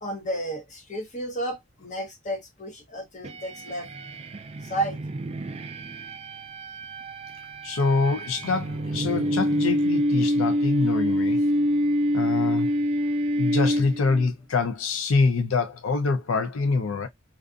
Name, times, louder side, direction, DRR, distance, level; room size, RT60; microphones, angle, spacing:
voice 1, 0.0-3.9 4.6-5.0, right 1 dB, 35° left, 0.9 m, -32 dB
sound 1, 3.2-14.3, equal, 30° right, 0.3 m, -26 dB
voice 2, 7.6-11.4 12.1-12.7 13.4-17.1, left 4 dB, 90° left, 0.5 m, -25 dB
2.5 x 2.5 x 2.4 m
head